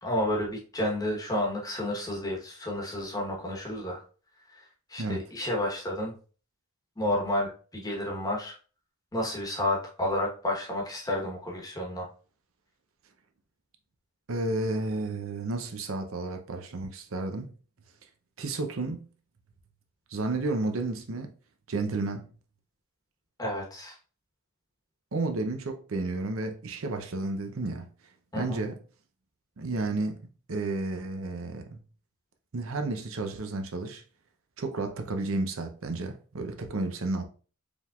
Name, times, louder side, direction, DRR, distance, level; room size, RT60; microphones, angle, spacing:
voice 1, 0.0-4.0 4.5-6.1 7.0-8.5 9.1-12.1 23.4-24.0 28.3-28.6, left 1 dB, 15° left, 1.0 m, -31 dB
voice 2, 14.3-17.5 18.4-19.1 20.1-21.3 21.7-22.3 25.1-27.9 28.4-28.8 29.6-30.2 30.5-31.8 32.5-34.0 34.6-37.2, right 2 dB, 75° right, 0.6 m, -32 dB
5.1 x 3.5 x 2.4 m
head